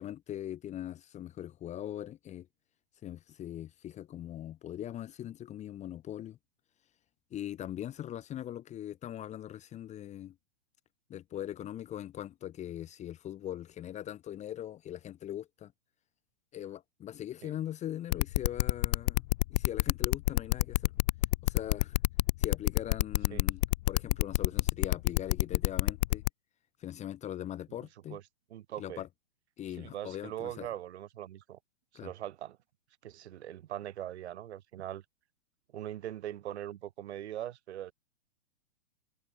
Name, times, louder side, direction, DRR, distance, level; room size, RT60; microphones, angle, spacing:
voice 1, 0.0-2.5 3.0-6.4 7.3-10.4 11.1-15.7 16.5-20.9 21.4-22.0 22.4-26.2 26.8-28.2 28.8-29.1 29.6-30.7 31.9-32.1, left 11 dB, 20° left, 1.2 m, -41 dB
sound 1, 18.1-26.3, left 19 dB, 35° left, 0.6 m, -27 dB
voice 2, 28.5-29.0 29.8-31.6 32.0-32.6 33.0-35.0 35.7-37.9, right 12 dB, 60° right, 3.6 m, -41 dB
hypercardioid pair, 125°, 37 cm